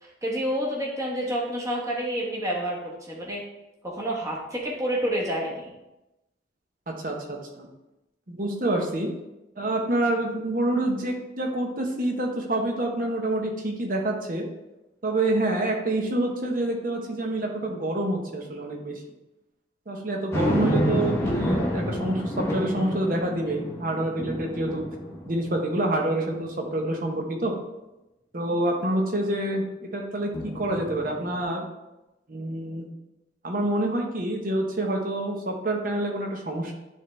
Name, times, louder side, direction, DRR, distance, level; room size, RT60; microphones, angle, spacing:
voice 1, 0.0-2.8 3.1-3.4 3.8-5.7, right 1 dB, 15° right, -3 dB, 1.2 m, -28 dB
voice 2, 6.9-7.7 8.3-9.1 9.6-14.4 15.0-19.0 19.9-24.8 25.3-27.5 28.3-31.7 32.3-32.9 33.4-36.7, right 1 dB, 45° right, 1 dB, 1.0 m, -27 dB
sound 1, 20.3-25.9 26.4-26.5 30.3-31.4, equal, 15° left, 0.9 m, -29 dB
9.2 x 3.4 x 3.3 m, 0.97 s
head